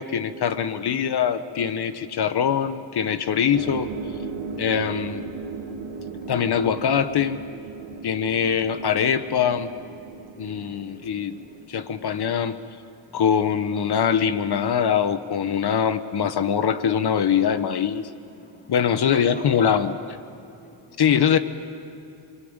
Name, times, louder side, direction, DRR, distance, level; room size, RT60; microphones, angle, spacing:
voice 1, 0.0-3.9 4.6-5.2 6.3-7.4 8.0-9.7 10.4-11.4 11.7-12.5 13.1-18.1 18.7-20.0 21.0-21.4, left 8 dB, 55° left, 12 dB, 1.3 m, -23 dB
sound 1, 3.5-11.7, right 5 dB, 85° right, 2.1 m, -36 dB
voice 2, 5.8-6.3 7.8-8.2 10.3-11.1 11.4-11.6 11.8-12.2 13.1-13.2 18.4-18.7 19.1-19.7 20.6-20.9, left 1 dB, 20° left, -1 dB, 4.4 m, -46 dB
27.5 x 23.5 x 9.0 m, 2.7 s
wide cardioid pair, 135°, 47 cm